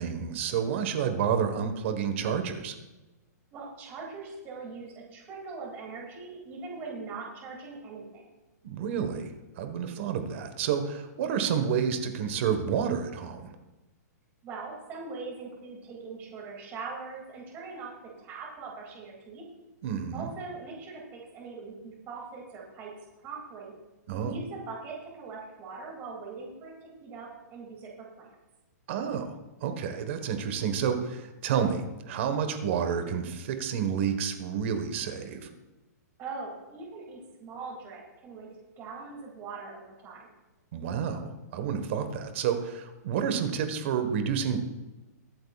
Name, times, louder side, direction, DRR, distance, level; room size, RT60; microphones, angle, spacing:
voice 1, 0.0-2.7 8.6-9.3 9.6-13.5 19.8-20.3 24.1-24.3 28.9-35.5 40.7-44.6, right 7 dB, 45° right, 7 dB, 1.4 m, -30 dB
voice 2, 3.5-8.3 14.4-17.9 18.2-19.4 20.1-21.0 21.3-22.9 23.2-23.7 24.2-28.3 36.2-38.5 38.8-40.3, right 4 dB, 20° right, -4 dB, 2.6 m, -41 dB
23.0 x 7.8 x 2.4 m, 1.1 s
hypercardioid pair, 160°, 9 cm